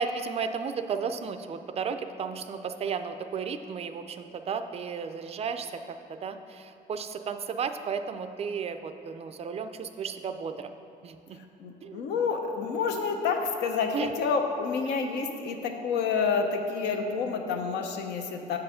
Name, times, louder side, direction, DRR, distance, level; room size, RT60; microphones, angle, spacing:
voice 1, 0.0-5.7 6.1-10.7 11.0-11.4 11.8-12.1 13.9-14.1, right 6 dB, 40° right, 9 dB, 0.4 m, -34 dB
voice 2, 11.3-18.6, left 5 dB, 80° left, 4 dB, 0.7 m, -29 dB
7.0 x 4.8 x 4.9 m, 2.8 s
cardioid pair, 110°, 17 cm